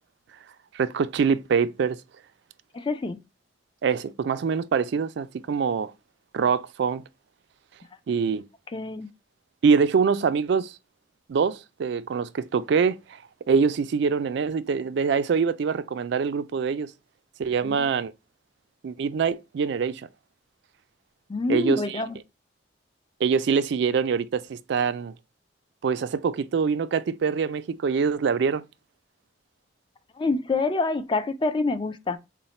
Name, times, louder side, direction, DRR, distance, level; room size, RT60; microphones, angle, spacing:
voice 1, 0.7-2.0 3.8-5.9 6.3-7.0 8.1-8.5 9.6-10.7 11.3-16.9 17.4-18.1 18.8-20.0 21.5-22.0 23.2-25.1 25.8-28.6, right 5 dB, 65° right, 0.4 m, -24 dB
voice 2, 2.7-3.2 8.7-9.1 17.6-17.9 21.3-22.2 30.2-32.2, left 3 dB, 25° left, 0.4 m, -27 dB
4.0 x 2.1 x 4.1 m
head